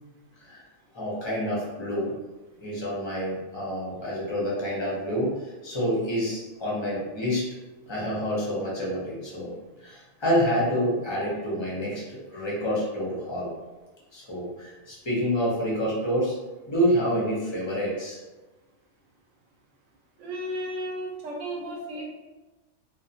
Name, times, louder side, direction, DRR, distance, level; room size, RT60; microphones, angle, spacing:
voice 1, 0.9-2.1 2.6-7.5 7.9-9.5 9.8-13.5 14.1-16.3 16.7-18.2, equal, 30° left, -7 dB, 0.5 m, -28 dB
voice 2, 20.2-22.0, equal, 70° right, -1 dB, 0.8 m, -33 dB
2.3 x 2.2 x 2.7 m, 1.1 s
omnidirectional pair, 1.5 m